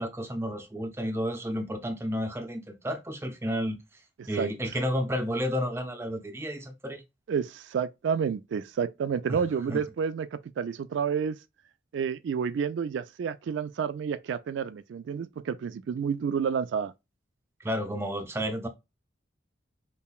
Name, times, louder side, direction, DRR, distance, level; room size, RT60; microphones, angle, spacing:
voice 1, 0.0-3.8 4.3-7.0 9.3-9.4 9.7-9.8 17.6-18.7, equal, 15° right, 0.5 m, -31 dB
voice 2, 4.2-4.5 7.3-11.4 11.9-16.9, right 7 dB, 70° right, 0.3 m, -30 dB
5.4 x 2.2 x 2.3 m
head